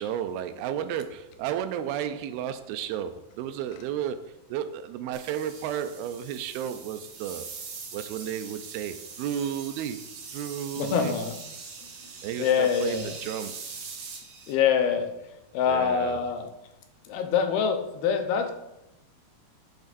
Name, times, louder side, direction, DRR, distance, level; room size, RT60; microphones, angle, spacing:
voice 1, 0.0-7.5 7.9-10.0 10.3-11.2 12.2-13.7 15.6-16.2, right 9 dB, 85° right, 2.4 m, -33 dB
sound 1, 5.1-14.5, right 5 dB, 60° right, 2.5 m, -42 dB
voice 2, 10.8-11.4 12.4-13.1 14.5-15.1 15.5-16.5 17.1-18.5, left 7 dB, 80° left, 2.7 m, -25 dB
10.5 x 6.3 x 2.6 m
omnidirectional pair, 4.4 m